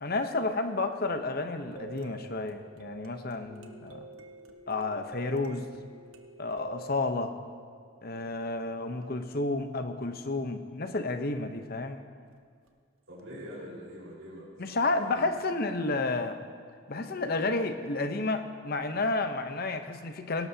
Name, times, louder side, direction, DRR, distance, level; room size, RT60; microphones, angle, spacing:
voice 1, 0.0-4.1 4.7-5.7 6.4-7.3 8.0-12.0 14.6-16.4 16.9-20.5, left 2 dB, 45° left, 8 dB, 0.8 m, -31 dB
sound 1, 1.5-8.4 12.7-12.8 13.2-13.3, right 3 dB, 85° right, 1.1 m, -48 dB
voice 2, 13.1-15.3, equal, 65° right, -7 dB, 4.6 m, -44 dB
18.0 x 18.0 x 2.8 m, 2.1 s
head